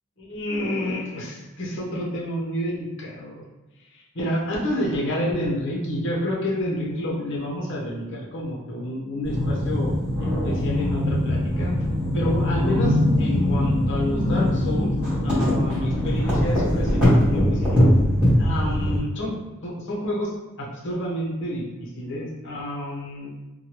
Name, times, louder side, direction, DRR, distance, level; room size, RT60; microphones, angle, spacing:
voice 1, 0.2-3.4 3.9-9.9 10.2-11.7 12.1-15.0 15.2-17.9 18.4-19.3 19.6-20.3 20.6-23.3, left 1 dB, 60° left, -3 dB, 0.8 m, -29 dB
sound 1, 9.2-19.0, left 1 dB, 5° right, 1.4 m, -21 dB
3.1 x 2.3 x 2.9 m, 1.1 s
head